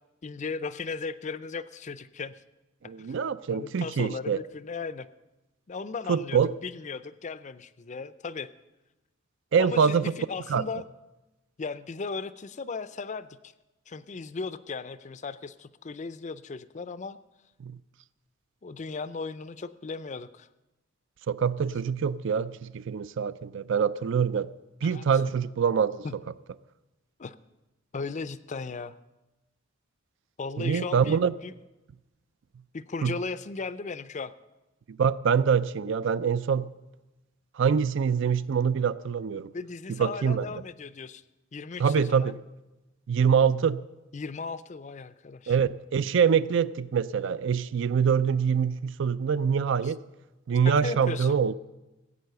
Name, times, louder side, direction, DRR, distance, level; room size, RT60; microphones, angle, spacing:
voice 1, 0.2-2.3 3.0-3.2 3.5-5.1 5.7-8.5 9.6-10.9 11.6-13.5 13.9-17.2 18.6-20.5 24.8-25.0 26.0-26.2 27.2-27.4 27.9-29.0 30.4-31.5 32.7-34.3 39.5-41.2 41.5-42.3 44.1-45.6 46.2-46.4 49.8-49.9 50.6-51.4, left 4 dB, 35° left, 15 dB, 0.4 m, -36 dB
voice 2, 2.8-4.4 6.1-6.5 9.5-10.0 10.5-10.6 17.6-17.8 21.3-24.5 24.8-26.1 30.6-31.3 33.0-33.1 34.9-36.7 37.6-39.5 40.0-40.5 41.8-42.3 43.1-43.8 45.5-50.0 50.5-51.6, right 6 dB, 65° right, 17 dB, 0.4 m, -25 dB
16.5 x 8.5 x 6.7 m, 1.0 s
head